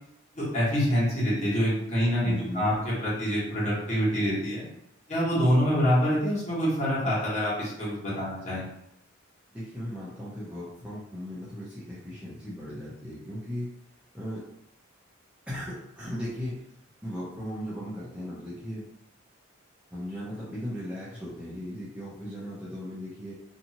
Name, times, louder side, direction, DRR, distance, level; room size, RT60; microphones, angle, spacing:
voice 1, 0.3-4.6 5.1-8.6, equal, 35° left, -8 dB, 1.3 m, -26 dB
voice 2, 2.2-2.8 9.5-13.7 14.1-14.4 15.5-16.6 17.0-18.9 19.9-23.3, equal, 5° right, -9 dB, 0.6 m, -37 dB
2.8 x 2.4 x 2.8 m, 0.76 s
head